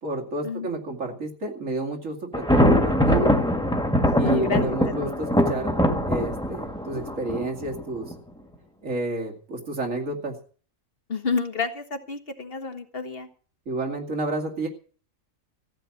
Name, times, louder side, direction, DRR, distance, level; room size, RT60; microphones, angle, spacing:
voice 1, 0.0-3.3 4.1-5.8 6.1-8.1 8.8-10.3 13.7-14.7, right 2 dB, 70° right, 2 dB, 2.9 m, -30 dB
Thunder, 2.3-8.1, equal, 5° left, 1.7 m, -22 dB
voice 2, 4.0-5.2 11.1-13.3, left 5 dB, 45° left, 7 dB, 1.8 m, -30 dB
15.0 x 9.2 x 7.2 m, 0.42 s
omnidirectional pair, 1.4 m